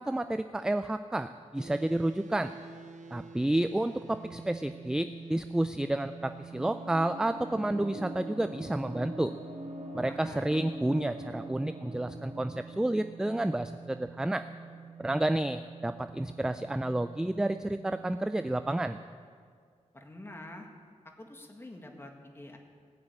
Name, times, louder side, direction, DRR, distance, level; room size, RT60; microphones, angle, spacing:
voice 1, 0.0-2.5 3.1-9.3 9.9-14.4 15.0-19.0, right 1 dB, 5° right, 10 dB, 0.3 m, -30 dB
sound 1, 1.6-19.1, right 6 dB, 80° right, 0.7 m, -48 dB
sound 2, 6.6-14.7, equal, 45° right, 1.5 m, -44 dB
voice 2, 10.1-10.6 19.9-20.7 21.2-22.6, left 1 dB, 20° left, 2 dB, 1.8 m, -47 dB
19.0 x 7.3 x 8.9 m, 2.1 s
wide cardioid pair, 145°, 13 cm